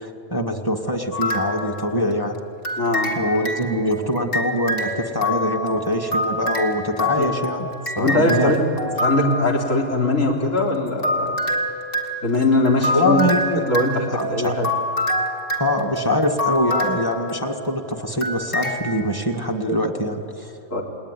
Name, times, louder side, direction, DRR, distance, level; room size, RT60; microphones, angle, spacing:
voice 1, 0.0-2.4 3.2-7.7 8.0-8.5 12.9-13.6 14.1-14.6 15.6-20.5, left 1 dB, 20° left, 4 dB, 1.9 m, -23 dB
sound 1, 1.1-2.2 2.6-9.6 10.6-17.8 18.2-18.8, left 1 dB, 45° left, 2.7 m, -27 dB
voice 2, 2.8-3.2 7.2-7.3 8.0-8.6 9.0-11.4 12.2-13.2 13.7-14.7 20.7-20.8, left 2 dB, 85° left, -1 dB, 3.8 m, -21 dB
29.5 x 19.5 x 10.0 m, 2.8 s
omnidirectional pair, 1.3 m